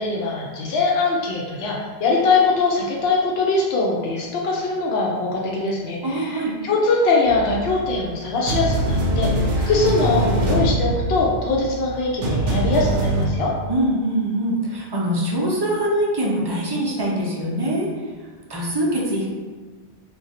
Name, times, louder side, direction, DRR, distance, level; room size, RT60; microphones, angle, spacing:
voice 1, 0.0-13.5, left 3 dB, 80° left, -3 dB, 0.8 m, -22 dB
voice 2, 6.0-6.5 13.7-17.9 18.5-19.3, right 1 dB, 35° right, -3 dB, 0.5 m, -23 dB
sound 1, 7.3-8.1 8.5-13.2, right 1 dB, 65° right, 0.7 m, -23 dB
2.5 x 2.3 x 4.0 m, 1.4 s
omnidirectional pair, 1.0 m